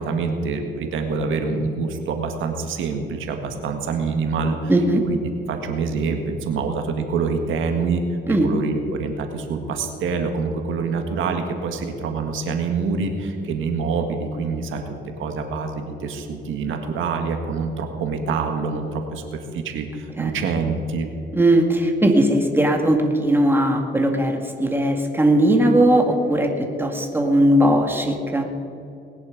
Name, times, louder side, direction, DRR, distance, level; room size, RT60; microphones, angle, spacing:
voice 1, 0.0-4.7 5.1-5.2 5.5-21.1, right 4 dB, 80° right, 5 dB, 1.7 m, -26 dB
voice 2, 4.7-5.0 8.3-8.5 20.2-20.3 21.3-28.5, right 1 dB, 10° right, 3 dB, 2.1 m, -18 dB
19.5 x 10.5 x 5.1 m, 2.8 s
cardioid pair, 90°, 20 cm